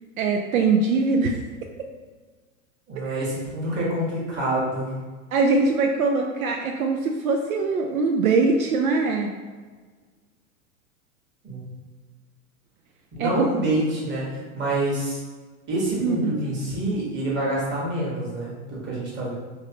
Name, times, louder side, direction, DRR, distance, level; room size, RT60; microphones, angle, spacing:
voice 1, 0.2-1.4 3.0-3.2 5.3-9.3 13.2-13.3 16.0-16.4, right 4 dB, 75° right, 3 dB, 0.5 m, -22 dB
voice 2, 2.9-4.9 11.4-11.8 13.2-15.2 15.7-19.3, right 1 dB, 25° right, -5 dB, 1.4 m, -27 dB
3.2 x 3.1 x 2.8 m, 1.4 s
hypercardioid pair, 95°, 43 cm